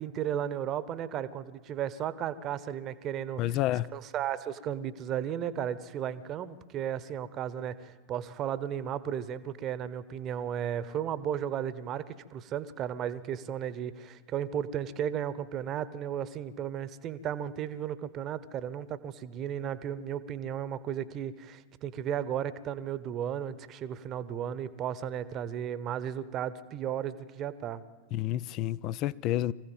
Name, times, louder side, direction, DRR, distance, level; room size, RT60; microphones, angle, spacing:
voice 1, 0.0-3.6 3.9-27.8, right 9 dB, 35° right, 1.1 m, -34 dB
voice 2, 3.4-3.9 28.1-29.5, left 14 dB, 40° left, 0.6 m, -29 dB
24.5 x 16.0 x 7.4 m
figure-of-eight pair, 90°, 0 cm